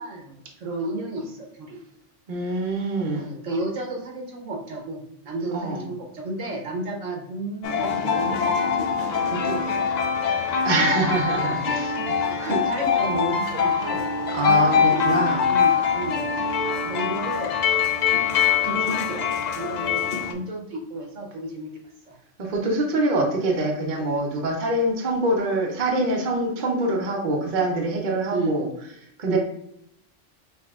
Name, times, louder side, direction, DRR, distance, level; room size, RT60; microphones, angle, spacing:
voice 1, 0.0-1.8 3.0-8.8 9.3-9.6 11.7-11.8 12.1-14.0 14.4-16.2 16.8-17.5 18.6-19.2 19.5-21.7 22.1-22.2 28.3-28.6 29.3-29.4, right 2 dB, 85° right, 1 dB, 1.3 m, -32 dB
voice 2, 2.3-3.3 5.5-5.8 10.6-12.0 12.4-12.6 14.3-15.4 22.4-28.7 29.2-29.4, right 2 dB, 45° right, 0 dB, 0.9 m, -24 dB
sound 1, 7.6-20.3, left 6 dB, 65° left, 0.4 m, -23 dB
5.7 x 2.9 x 2.3 m, 0.75 s
omnidirectional pair, 1.3 m